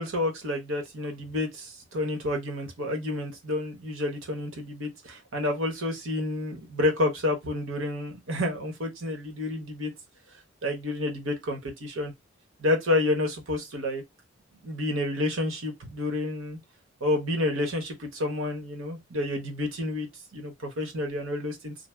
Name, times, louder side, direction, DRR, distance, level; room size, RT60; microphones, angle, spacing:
voice 1, 0.0-9.9 10.6-12.1 12.6-14.0 14.6-16.6 17.0-21.8, left 2 dB, 90° right, 1.0 m, -29 dB
2.7 x 2.0 x 3.3 m
head